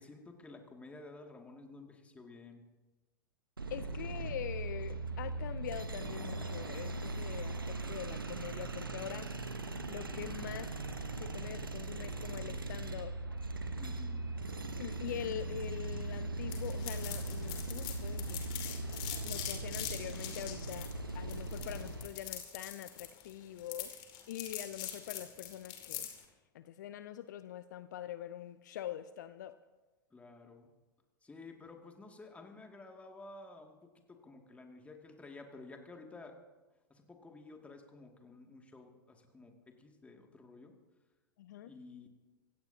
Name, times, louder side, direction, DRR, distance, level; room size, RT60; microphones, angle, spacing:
voice 1, 0.0-2.6 3.9-4.0 13.8-14.5 30.1-30.7 31.2-36.3 36.9-40.7 41.6-42.1, left 3 dB, 10° left, 3 dB, 2.2 m, -52 dB
sound 1, 3.6-22.1, right 2 dB, 80° right, 1.2 m, -39 dB
voice 2, 3.7-9.3 9.9-10.7 11.2-13.1 13.6-13.7 14.8-18.4 19.2-20.9 21.1-23.9 24.3-26.1 26.5-29.5 41.4-41.7, left 11 dB, 55° left, 13 dB, 0.6 m, -44 dB
sound 2, 16.5-26.2, left 11 dB, 40° left, 2.6 m, -43 dB
25.5 x 16.5 x 2.8 m, 1.2 s
figure-of-eight pair, 90°, 11 cm